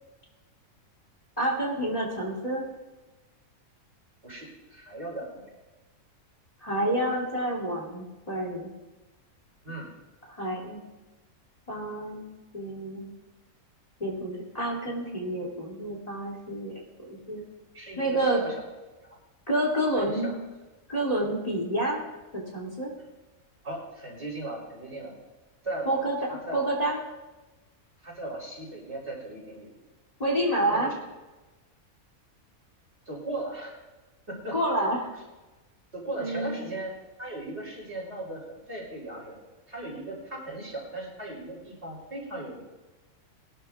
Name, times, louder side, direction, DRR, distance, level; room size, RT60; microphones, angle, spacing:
voice 1, 1.4-2.6 6.6-8.7 10.3-10.8 11.7-13.1 14.0-17.4 18.0-18.4 19.5-20.3 20.9-22.0 22.3-22.9 25.9-27.0 30.2-30.9 34.5-35.1 36.2-36.6, right 1 dB, 25° left, -4 dB, 2.8 m, -29 dB
voice 2, 4.2-5.5 9.6-9.9 17.7-18.5 19.0-19.2 20.0-20.3 23.6-25.2 25.6-26.6 28.0-29.7 30.7-31.0 33.1-33.8 34.3-34.5 35.9-36.9 37.2-39.4 39.7-42.6, right 2 dB, 50° right, -3 dB, 3.9 m, -37 dB
21.0 x 12.0 x 2.4 m, 1.1 s
omnidirectional pair, 1.5 m